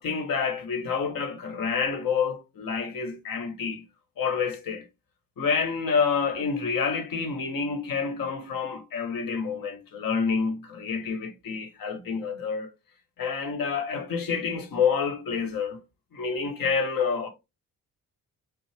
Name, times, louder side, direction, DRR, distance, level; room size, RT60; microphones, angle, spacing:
voice 1, 0.0-3.8 4.2-4.8 5.4-12.7 13.2-15.8 16.1-17.3, left 5 dB, 65° left, 1.2 m, -28 dB
5.3 x 2.0 x 3.4 m
hypercardioid pair, 45°, 37 cm